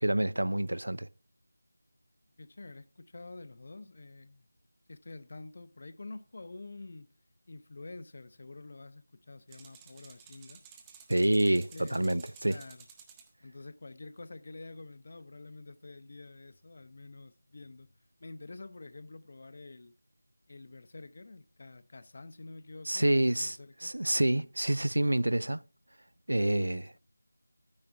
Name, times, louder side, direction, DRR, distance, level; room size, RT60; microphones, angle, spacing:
voice 1, 0.0-1.1 11.1-12.6 22.9-25.6 26.3-26.9, right 1 dB, 65° right, 0.5 m, -28 dB
voice 2, 2.4-4.5 4.9-7.1 7.5-10.6 11.2-12.1 12.5-12.9 13.4-17.9 18.2-20.0 20.5-23.9 26.6-27.0, left 3 dB, 40° left, 0.7 m, -48 dB
sound 1, 9.5-13.3, right 7 dB, 10° right, 0.7 m, -54 dB
12.5 x 9.7 x 3.6 m
figure-of-eight pair, 165°, 0 cm